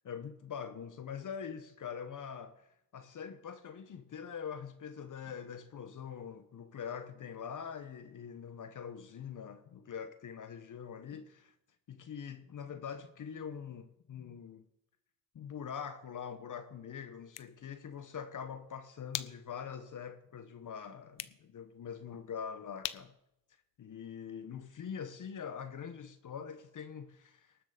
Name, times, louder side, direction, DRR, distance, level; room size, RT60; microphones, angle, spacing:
voice 1, 0.0-11.5 11.9-14.7 15.3-23.1 23.8-27.6, left 7 dB, 45° left, 1.1 m, -44 dB
sound 1, 17.1-24.5, left 15 dB, 70° left, 0.8 m, -48 dB
19.5 x 6.5 x 5.1 m
cardioid pair, 85°, 44 cm